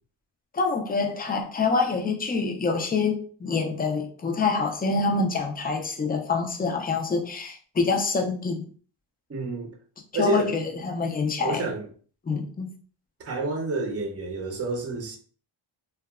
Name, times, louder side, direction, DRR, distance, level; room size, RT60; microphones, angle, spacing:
voice 1, 0.5-8.7 10.2-11.6 12.3-12.7, left 4 dB, 20° left, 0.3 m, -26 dB
voice 2, 9.3-9.7 10.1-10.5 11.4-11.9 13.2-15.2, right 3 dB, 30° right, 0.5 m, -29 dB
2.7 x 2.2 x 2.3 m
wide cardioid pair, 120°, 49 cm